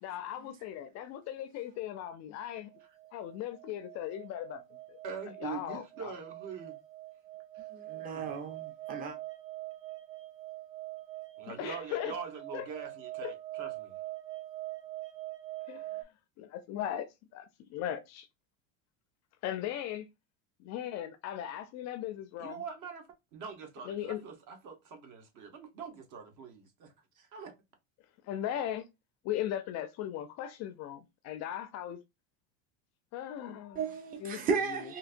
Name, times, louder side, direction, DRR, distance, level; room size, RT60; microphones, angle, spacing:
voice 1, 0.0-2.7 3.1-4.6 4.9-5.0 5.4-6.1 11.5-12.1 12.5-12.7 13.2-13.3 15.7-16.0 16.4-17.1 17.3-18.3 19.4-20.1 20.6-22.6 23.9-24.2 28.3-28.9 29.2-32.0 33.1-33.8 34.2-34.9, left 11 dB, 45° left, 0.4 m, -38 dB
sound 1, 2.7-16.0, right 17 dB, 85° right, 0.9 m, -44 dB
voice 2, 5.0-6.7 7.5-7.6 7.9-8.3 11.4-14.0 22.4-23.1 23.3-27.5, right 6 dB, 45° right, 1.2 m, -44 dB
voice 3, 7.7-9.2 33.7-35.0, right 5 dB, 20° right, 0.6 m, -34 dB
3.7 x 2.7 x 2.5 m
supercardioid pair, 130°, 40 cm